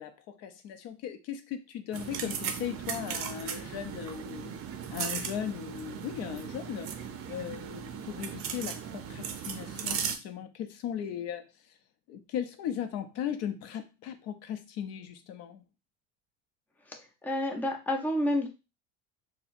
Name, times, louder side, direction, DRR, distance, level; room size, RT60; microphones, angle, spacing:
voice 1, 0.0-4.5 4.9-6.9 7.3-11.5 12.1-15.6, left 9 dB, 60° left, 8 dB, 0.5 m, -37 dB
sound 1, 1.9-10.2, right 7 dB, 50° right, 0.6 m, -37 dB
voice 2, 16.9-18.5, left 1 dB, 5° left, 2 dB, 0.5 m, -30 dB
4.2 x 2.1 x 2.4 m, 0.28 s
supercardioid pair, 120°, 29 cm